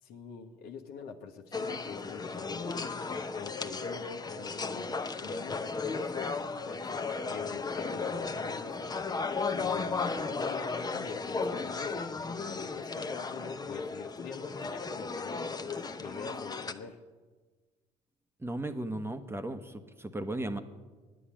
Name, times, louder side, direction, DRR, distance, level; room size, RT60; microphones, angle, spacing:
voice 1, 0.0-2.8 3.3-8.9 9.5-17.0, left 5 dB, 65° left, 4 dB, 1.3 m, -44 dB
sound 1, 1.5-16.7, left 4 dB, 25° left, 0.9 m, -35 dB
voice 2, 18.4-20.6, right 1 dB, 15° right, 9 dB, 1.1 m, -36 dB
10.0 x 10.0 x 8.7 m, 1.3 s
hypercardioid pair, 60°, 17 cm